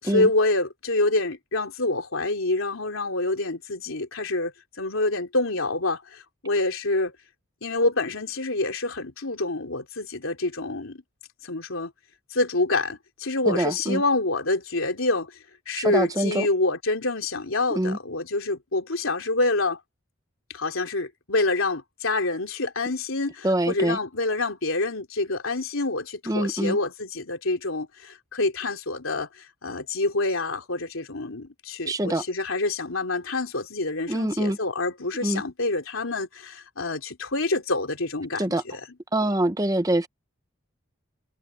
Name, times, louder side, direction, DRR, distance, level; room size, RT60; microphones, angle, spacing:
voice 1, 0.0-4.5 4.8-7.1 7.6-11.0 11.4-11.9 12.3-15.3 15.7-19.8 20.5-38.8, left 2 dB, 90° left, 3.6 m, -27 dB
voice 2, 13.4-14.0 15.8-16.5 17.7-18.0 23.4-24.0 26.3-26.8 31.9-32.2 34.1-34.6 35.2-35.4 38.4-38.6 39.1-40.1, right 1 dB, 15° right, 0.8 m, -24 dB
head